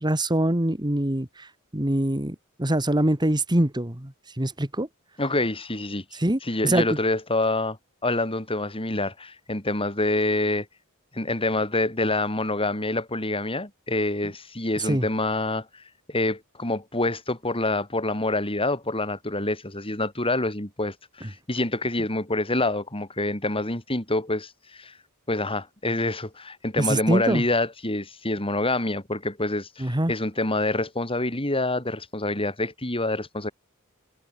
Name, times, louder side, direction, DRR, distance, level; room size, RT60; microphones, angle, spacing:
voice 1, 0.0-4.9 6.2-7.0 14.9-15.1 26.8-27.4 29.8-30.1, right 1 dB, 20° right, 2.1 m, -24 dB
voice 2, 5.2-6.0 6.4-7.8 8.0-10.7 11.1-24.9 25.3-33.5, left 2 dB, 25° left, 6.6 m, -26 dB
head